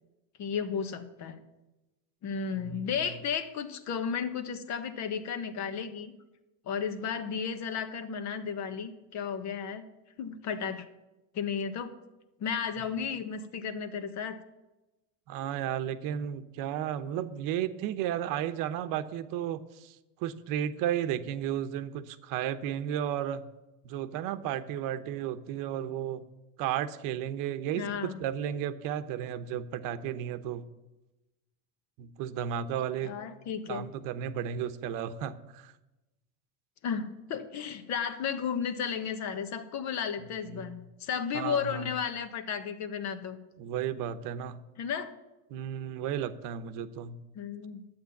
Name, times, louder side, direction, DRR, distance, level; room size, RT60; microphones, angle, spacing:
voice 1, 0.4-1.4 2.2-6.1 6.6-9.8 10.2-10.8 11.3-11.9 12.4-14.4 27.8-28.2 33.0-33.8 36.8-43.4 44.8-45.1 47.3-47.8, left 7 dB, 45° left, 9 dB, 1.5 m, -34 dB
voice 2, 15.3-23.4 23.8-26.2 26.6-30.6 32.0-33.1 33.7-35.7 40.4-40.7 41.3-41.9 43.6-44.6 45.5-47.2, right 10 dB, 55° right, 11 dB, 1.0 m, -33 dB
11.5 x 8.9 x 7.2 m, 1.0 s
supercardioid pair, 115°, 40 cm